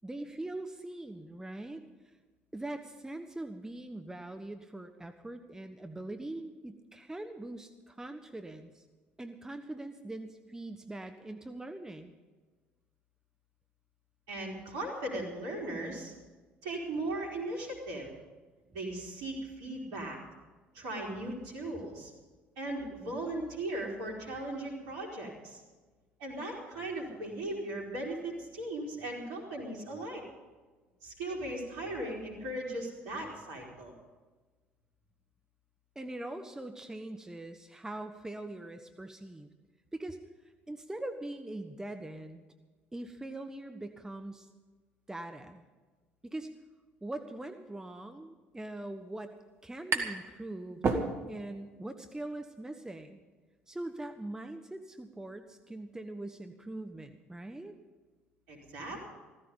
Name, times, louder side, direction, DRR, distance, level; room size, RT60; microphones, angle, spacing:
voice 1, 0.0-2.1 2.5-8.8 9.2-12.1 35.9-39.5 39.9-40.2 40.4-42.4 42.9-44.5 45.1-45.6 46.2-46.5 47.0-49.3 49.6-50.8 51.3-53.2 53.7-57.8, right 1 dB, 10° right, 7 dB, 1.1 m, -42 dB
voice 2, 14.3-16.1 16.6-18.1 18.7-20.2 20.7-22.1 22.6-25.6 26.2-30.2 31.0-33.9 58.5-59.0, right 1 dB, 65° right, -1 dB, 4.5 m, -38 dB
sound 1, 49.1-50.3 50.6-51.6, right 4 dB, 45° right, 2.2 m, -32 dB
15.5 x 15.0 x 5.4 m, 1.3 s
figure-of-eight pair, 55°, 6 cm